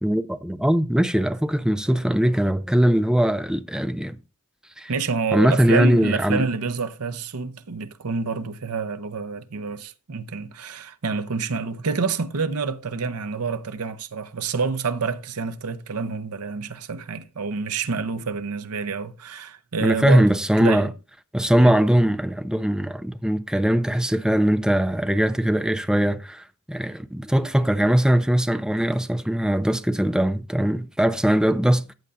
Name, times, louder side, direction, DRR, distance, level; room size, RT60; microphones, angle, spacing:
voice 1, 0.0-4.2 4.8-4.9 5.3-6.4 19.8-20.9 21.3-31.9, right 1 dB, 5° right, 0.4 m, -21 dB
voice 2, 4.9-20.9 21.6-21.7, right 4 dB, 85° right, 0.7 m, -28 dB
14.0 x 8.0 x 2.5 m
head